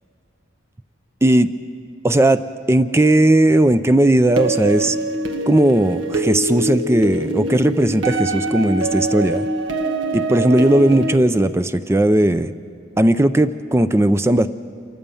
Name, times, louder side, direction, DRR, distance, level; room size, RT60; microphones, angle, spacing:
voice 1, 2.0-2.4 2.7-5.0 5.5-9.5 10.1-12.5 13.0-14.5, right 1 dB, 15° right, 12 dB, 0.4 m, -16 dB
sound 1, 4.4-11.2, right 2 dB, 80° right, 1.4 m, -24 dB
28.0 x 14.5 x 7.0 m, 2.6 s
head